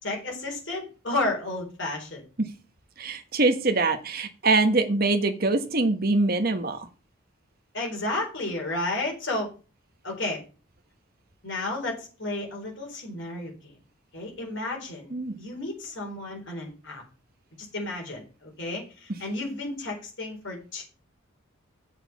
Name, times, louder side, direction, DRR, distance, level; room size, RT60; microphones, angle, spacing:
voice 1, 0.0-2.2 7.7-9.5 10.0-10.4 11.4-13.7 14.1-17.0 17.6-20.8, left 2 dB, 60° left, 0 dB, 4.2 m, -32 dB
voice 2, 3.0-6.9 15.1-15.4, right 3 dB, 45° right, 7 dB, 1.2 m, -24 dB
7.7 x 6.6 x 6.0 m, 0.35 s
head